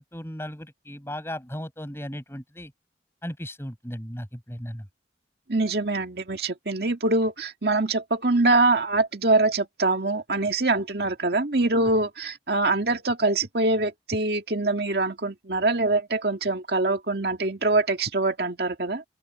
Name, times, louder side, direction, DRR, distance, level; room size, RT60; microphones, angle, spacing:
voice 1, 0.0-2.7 3.2-4.9, equal, 15° left, 7.4 m, -36 dB
voice 2, 5.5-19.0, right 2 dB, 65° right, 2.0 m, -24 dB
open air
head